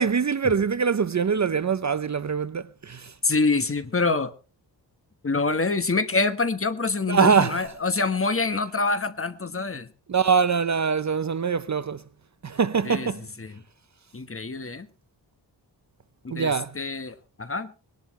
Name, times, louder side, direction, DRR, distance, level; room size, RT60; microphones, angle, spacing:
voice 1, 0.0-3.1 7.1-7.7 10.1-12.0 12.4-13.3 16.3-16.7, right 6 dB, 40° right, 0.6 m, -23 dB
voice 2, 3.2-4.3 5.2-9.9 12.8-13.1 13.4-13.6 14.1-14.9 16.2-17.7, left 3 dB, 30° left, 1.3 m, -26 dB
21.5 x 12.0 x 3.1 m
wide cardioid pair, 110°, 43 cm